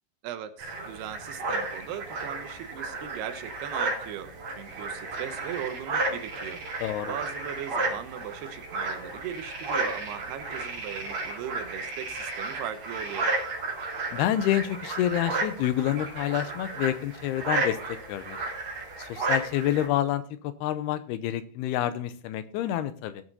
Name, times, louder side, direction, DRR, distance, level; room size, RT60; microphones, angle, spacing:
voice 1, 0.2-6.6 7.0-13.3, right 10 dB, 90° right, 10 dB, 3.0 m, -38 dB
sound 1, 0.6-19.9, right 3 dB, 45° right, 3.5 m, -33 dB
voice 2, 6.8-7.1 14.1-17.8 18.1-18.4 19.0-23.2, left 12 dB, 85° left, 12 dB, 2.8 m, -28 dB
17.0 x 6.2 x 4.1 m, 0.44 s
omnidirectional pair, 4.5 m